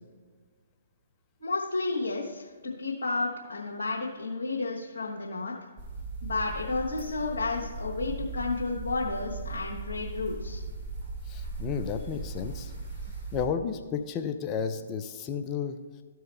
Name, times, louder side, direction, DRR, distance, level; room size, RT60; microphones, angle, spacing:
voice 1, 1.4-5.5 6.2-10.6, left 3 dB, 70° left, -4 dB, 1.4 m, -32 dB
sound 1, 5.8-13.5, right 3 dB, 25° right, 2.5 m, -38 dB
voice 2, 11.3-12.7 13.3-15.8, left 7 dB, 25° left, 7 dB, 0.6 m, -32 dB
13.5 x 4.7 x 3.3 m, 1.5 s
figure-of-eight pair, 125°, 0 cm